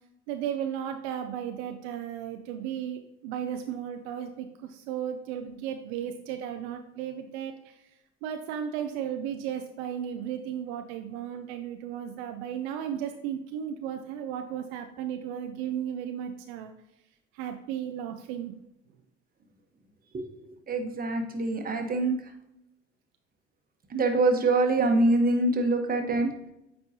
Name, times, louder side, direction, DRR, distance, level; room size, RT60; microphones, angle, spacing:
voice 1, 0.3-7.8 8.2-16.7 17.3-18.5, right 9 dB, 70° right, 6 dB, 0.6 m, -35 dB
voice 2, 20.1-22.1 23.9-26.3, right 2 dB, 25° right, 4 dB, 1.2 m, -25 dB
8.4 x 4.4 x 2.9 m, 0.85 s
hypercardioid pair, 70°, 34 cm